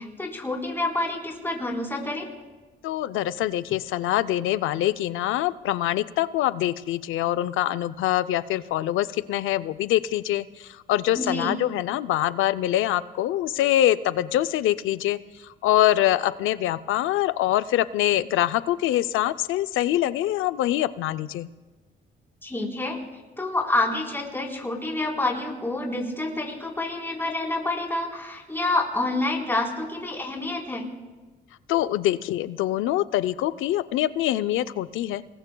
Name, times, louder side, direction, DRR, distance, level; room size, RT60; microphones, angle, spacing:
voice 1, 0.0-2.3 11.1-11.6 22.4-23.0 23.4-30.9, left 2 dB, 10° left, -1 dB, 4.0 m, -28 dB
voice 2, 2.8-21.5 31.7-35.2, left 13 dB, 85° left, 13 dB, 0.6 m, -24 dB
30.0 x 20.0 x 2.3 m, 1.3 s
cardioid pair, 90°, 20 cm